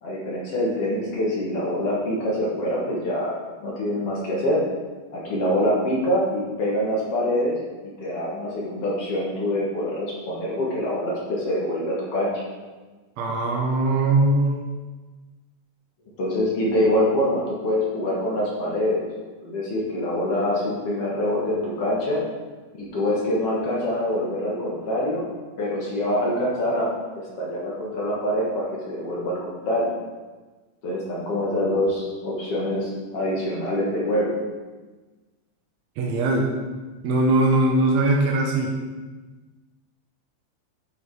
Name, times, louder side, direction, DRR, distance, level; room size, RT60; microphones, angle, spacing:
voice 1, 0.0-4.6 5.1-7.6 8.0-12.3 16.2-19.0 19.4-22.2 22.7-25.3 25.6-26.9 27.1-29.9 30.8-34.3, left 1 dB, 50° left, -5 dB, 2.4 m, -25 dB
voice 2, 13.2-14.6 36.0-36.5 37.0-38.7, right 2 dB, 70° right, 0 dB, 2.0 m, -20 dB
9.6 x 5.4 x 4.8 m, 1.3 s
omnidirectional pair, 3.7 m